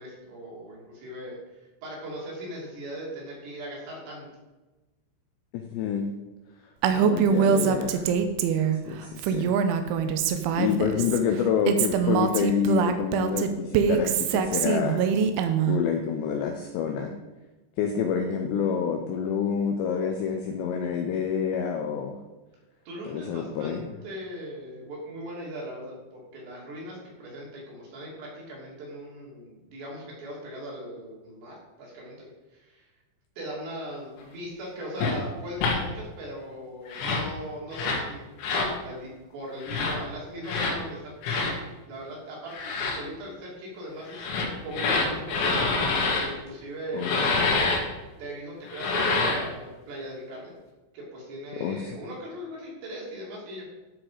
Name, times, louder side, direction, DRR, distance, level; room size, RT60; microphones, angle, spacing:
voice 1, 0.0-4.3 22.9-32.9 33.4-38.2 38.8-41.1 41.9-44.3 44.6-45.6 46.2-47.5 48.2-50.5 50.9-53.6, equal, 60° right, -4 dB, 4.8 m, -39 dB
voice 2, 5.5-6.1 6.9-8.1 8.9-9.6 10.6-15.1 15.7-17.1 17.8-22.1 23.1-23.8 46.9-47.6 51.6-51.8, left 7 dB, 85° left, 4 dB, 2.5 m, -28 dB
Female speech woman speaking, 6.8-8.8 9.2-11.2 11.7-15.8, right 7 dB, 80° right, 2.9 m, -24 dB
sound 1, 35.0-35.1 35.6-35.8 36.9-37.3 37.7-38.0 38.4-38.7 39.6-39.9 40.4-40.8 41.2-41.5 42.5-43.0 44.1-46.3 47.0-47.8 48.7-49.5, left 3 dB, 65° left, 3.7 m, -26 dB
12.0 x 6.3 x 4.8 m, 1.1 s
omnidirectional pair, 5.9 m